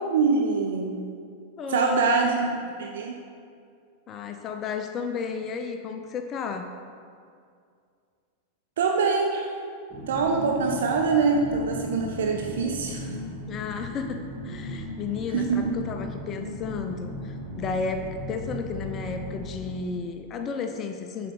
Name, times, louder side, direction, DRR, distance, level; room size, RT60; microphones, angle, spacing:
voice 1, 0.1-1.0 1.7-3.1 8.8-9.6 10.1-13.2 15.3-15.7, right 4 dB, 60° right, 2 dB, 0.5 m, -24 dB
voice 2, 1.6-2.4 4.1-6.7 13.5-21.3, left 5 dB, 30° left, 6 dB, 0.4 m, -33 dB
sound 1, 9.9-19.7, left 1 dB, 25° right, 1.3 m, -37 dB
7.3 x 4.9 x 3.9 m, 2.2 s
figure-of-eight pair, 90°, 0 cm